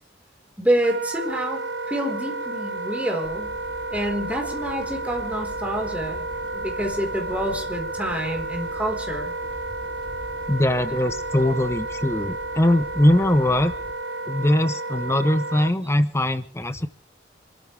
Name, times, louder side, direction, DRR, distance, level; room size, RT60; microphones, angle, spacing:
voice 1, 0.6-1.6 1.9-3.5 3.9-6.2 6.5-9.3, equal, 10° right, 2 dB, 4.3 m, -27 dB
Wind instrument woodwind instrument, 0.8-15.7, right 2 dB, 85° right, 0.7 m, -32 dB
sound 1, 3.2-13.9, equal, 30° right, 3.1 m, -43 dB
voice 2, 10.5-13.7 14.3-16.9, left 1 dB, 15° left, 11 dB, 0.8 m, -21 dB
27.5 x 13.5 x 3.4 m, 0.38 s
head